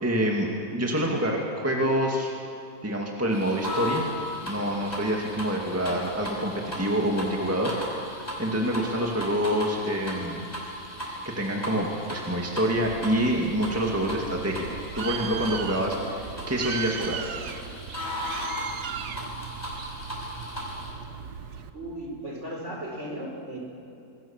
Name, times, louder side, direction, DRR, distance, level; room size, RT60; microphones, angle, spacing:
voice 1, 0.0-2.3 2.8-4.1 4.4-7.7 8.4-10.4 11.2-14.7 14.9-17.2, equal, 10° right, 0 dB, 2.2 m, -26 dB
sound 1, 3.3-20.9, left 1 dB, 25° left, 6.0 m, -37 dB
Bird, 12.7-21.7, right 7 dB, 75° right, 1.6 m, -38 dB
voice 2, 21.7-23.6, right 1 dB, 45° right, 0 dB, 5.1 m, -36 dB
27.0 x 21.5 x 7.3 m, 2.6 s
omnidirectional pair, 1.7 m